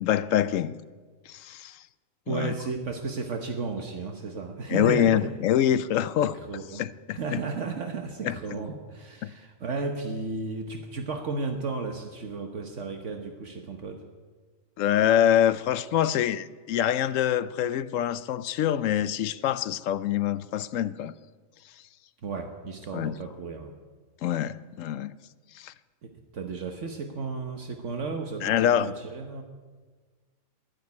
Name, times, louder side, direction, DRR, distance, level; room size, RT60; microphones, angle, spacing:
voice 1, 0.0-0.8 1.3-1.8 2.3-2.5 4.7-6.4 6.7-7.4 8.2-8.4 9.2-9.3 14.8-21.1 22.9-23.2 24.2-25.1 25.5-25.7 28.4-28.9, left 10 dB, 80° left, 1.0 m, -25 dB
voice 2, 2.3-5.3 6.2-6.8 7.1-14.0 22.2-23.7 26.0-29.4, right 4 dB, 65° right, 1.4 m, -34 dB
11.5 x 11.0 x 9.5 m
omnidirectional pair, 1.3 m